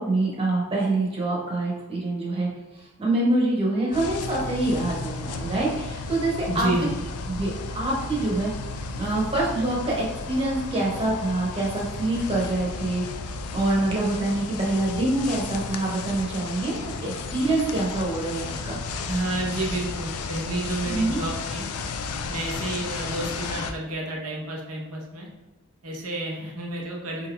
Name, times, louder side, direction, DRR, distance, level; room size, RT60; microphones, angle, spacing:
voice 1, 0.0-2.5 3.0-6.7 7.3-8.5 9.0-13.0 13.5-18.8 20.8-21.2, right 2 dB, 25° right, -4 dB, 1.1 m, -25 dB
sound 1, 3.9-23.7, left 4 dB, 75° left, 0.4 m, -34 dB
voice 2, 6.5-6.9 19.0-21.6 22.3-25.3 25.8-27.3, right 2 dB, 70° right, -1 dB, 0.9 m, -30 dB
4.1 x 3.8 x 2.3 m, 1.1 s
head